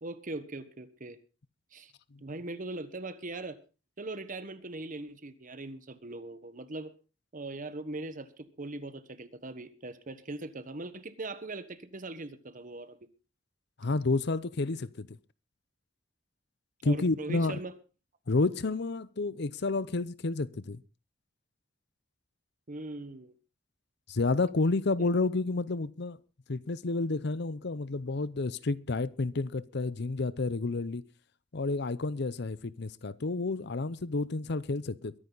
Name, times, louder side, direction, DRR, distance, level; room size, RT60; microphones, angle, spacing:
voice 1, 0.0-1.2 1.7-1.9 2.2-3.6 4.0-6.9 7.3-13.0 16.8-17.7 22.7-23.3 25.0-25.1, right 2 dB, 45° right, 1.3 m, -40 dB
voice 2, 13.8-15.2 16.8-17.6 18.3-20.8 24.1-26.2 26.5-31.0 31.5-35.1, left 3 dB, 60° left, 0.7 m, -30 dB
22.5 x 10.0 x 4.0 m
head